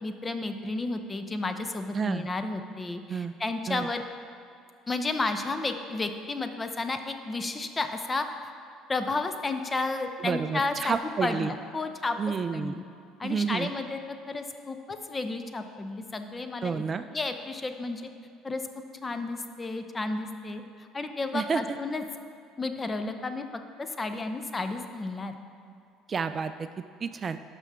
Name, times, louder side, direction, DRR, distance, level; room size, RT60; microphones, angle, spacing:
voice 1, 0.0-4.0 4.9-8.5 8.9-11.0 11.2-12.2 12.5-12.8 13.2-14.0 14.3-16.8 17.1-18.0 18.4-18.7 19.0-22.0 22.6-23.4 23.8-25.4, left 3 dB, 25° left, 7 dB, 0.6 m, -32 dB
voice 2, 1.9-2.3 3.1-3.3 3.7-3.9 10.2-11.5 12.2-12.8 13.2-13.7 16.6-17.0 21.3-21.8 26.1-26.7 27.0-27.4, right 6 dB, 35° right, 10 dB, 0.3 m, -30 dB
11.5 x 6.0 x 3.6 m, 2.4 s
supercardioid pair, 85°, 0 cm